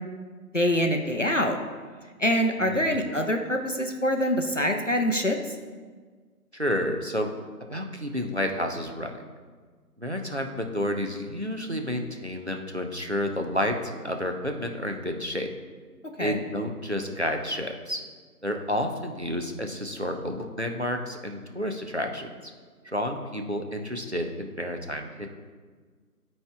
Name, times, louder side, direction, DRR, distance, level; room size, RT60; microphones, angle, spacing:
voice 1, 0.5-1.6 2.2-5.6 16.2-16.4, equal, 55° left, 3 dB, 0.5 m, -25 dB
voice 2, 2.6-3.0 6.5-7.3 7.6-9.1 10.0-15.5 16.2-18.0 18.4-22.5 22.8-25.3, equal, 50° right, 4 dB, 0.4 m, -30 dB
12.0 x 4.3 x 2.3 m, 1.5 s
figure-of-eight pair, 170°, 46 cm